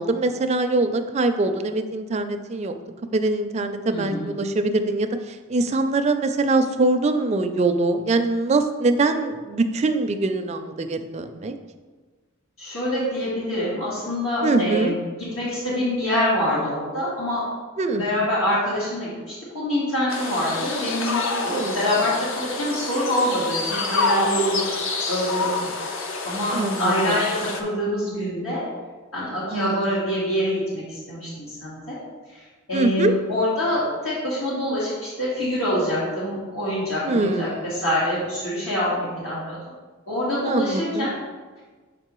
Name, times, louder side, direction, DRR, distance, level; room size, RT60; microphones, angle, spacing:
voice 1, 0.0-2.8 3.1-11.6 14.4-14.9 17.8-18.1 21.5-21.9 26.5-27.2 29.5-30.0 32.7-33.1 37.0-37.7 40.4-41.1, right 2 dB, 30° right, 7 dB, 0.4 m, -23 dB
voice 2, 3.9-4.3 12.6-14.9 15.3-17.4 18.0-28.6 29.1-32.0 32.3-32.4 32.7-39.6 40.1-41.1, left 1 dB, 80° left, -8 dB, 1.7 m, -25 dB
sound 1, 20.1-27.6, left 3 dB, 65° left, 0.7 m, -27 dB
6.6 x 5.0 x 3.0 m, 1.3 s
head